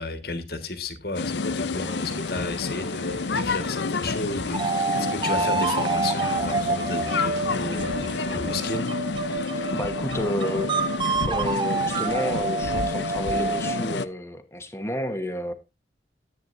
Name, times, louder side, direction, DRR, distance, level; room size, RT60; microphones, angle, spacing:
voice 1, 0.0-9.5, left 3 dB, 55° left, 1.7 m, -33 dB
sound 1, 1.1-14.0, left 4 dB, 80° left, 0.7 m, -29 dB
sound 2, 1.7-8.7, right 2 dB, 85° right, 1.3 m, -41 dB
sound 3, 4.5-14.0, right 3 dB, 25° right, 0.7 m, -28 dB
voice 2, 9.7-10.7 11.3-15.5, left 1 dB, 15° left, 1.2 m, -30 dB
14.0 x 9.0 x 2.7 m
head